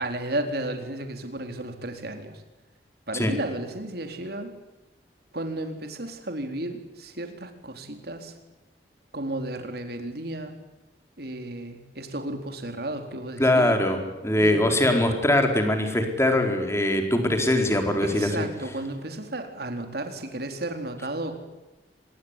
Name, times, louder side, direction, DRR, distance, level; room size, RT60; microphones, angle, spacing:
voice 1, 0.0-2.4 3.1-4.5 5.3-8.3 9.1-10.5 11.2-13.8 14.4-14.6 18.0-21.3, right 1 dB, 60° right, 6 dB, 4.0 m, -33 dB
voice 2, 13.4-18.5, left 1 dB, 15° left, 5 dB, 4.3 m, -22 dB
25.5 x 22.5 x 9.9 m, 1.0 s
head